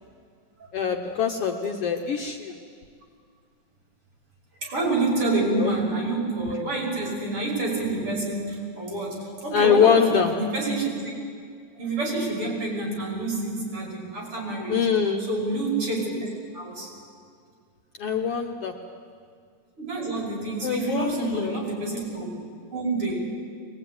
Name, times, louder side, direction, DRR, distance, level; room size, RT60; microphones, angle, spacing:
voice 1, 0.7-2.6 5.5-5.7 9.5-10.3 14.7-15.3 18.0-18.7 20.6-21.5, left 7 dB, 60° left, 3 dB, 1.8 m, -23 dB
voice 2, 4.6-10.9 11.8-14.9 15.2-16.1 16.5-16.9 19.8-22.3 22.7-23.2, right 2 dB, 45° right, -2 dB, 6.6 m, -28 dB
23.0 x 20.5 x 9.5 m, 2.1 s
omnidirectional pair, 3.4 m